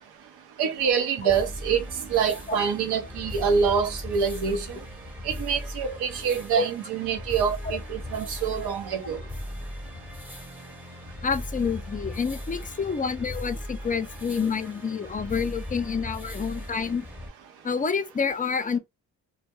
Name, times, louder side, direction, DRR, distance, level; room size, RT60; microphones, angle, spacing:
voice 1, 0.6-1.8 2.1-4.8 5.2-9.2, right 6 dB, 80° right, 0.7 m, -26 dB
sound 1, 1.3-17.3, left 1 dB, 5° right, 0.8 m, -38 dB
voice 2, 11.2-17.1 17.6-18.8, left 5 dB, 20° left, 0.4 m, -28 dB
2.2 x 2.1 x 2.9 m
supercardioid pair, 50°, 39 cm